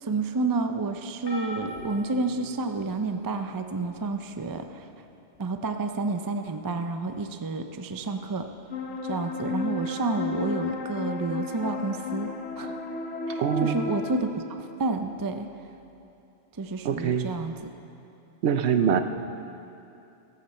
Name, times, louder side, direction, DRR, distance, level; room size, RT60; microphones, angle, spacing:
voice 1, 0.0-4.9 5.4-8.5 9.0-12.3 12.5-12.8 13.3-15.5 16.6-17.5, right 3 dB, 35° right, 7 dB, 0.3 m, -30 dB
sound 1, 1.3-3.1 3.8-4.1 5.3-5.4, equal, 50° left, 1.6 m, -40 dB
sound 2, 8.7-14.2, left 3 dB, 75° left, 1.2 m, -33 dB
voice 2, 13.4-13.8 16.8-17.3 18.4-19.0, right 8 dB, 65° right, 9 dB, 0.9 m, -24 dB
15.0 x 13.5 x 4.3 m, 2.7 s
omnidirectional pair, 1.3 m